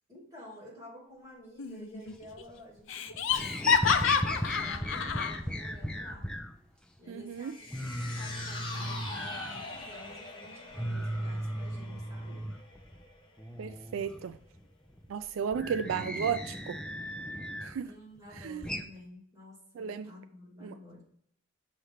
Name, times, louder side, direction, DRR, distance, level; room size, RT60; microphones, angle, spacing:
voice 1, 0.1-4.3 4.6-6.3 7.0-12.5 17.8-21.0, left 1 dB, 15° right, -6 dB, 2.9 m, -51 dB
Laughter, 1.6-2.1 2.4-2.5 2.9-5.4, left 6 dB, 70° left, 0.6 m, -28 dB
sound 1, 2.1-2.8 3.1-6.5 7.0-7.1 7.4-7.5 7.7-10.2 10.4-13.0 13.4-17.8 18.2-18.8, equal, 5° left, 0.5 m, -37 dB
voice 2, 7.1-7.5 13.6-14.4 15.1-16.8 17.6-17.9 18.4-18.7 19.8-20.1 20.6-20.7, right 7 dB, 80° right, 11 dB, 0.3 m, -34 dB
sound 2, 7.3-13.8 14.1-14.2, left 3 dB, 25° left, 1.2 m, -44 dB
6.6 x 3.2 x 5.6 m, 0.68 s
head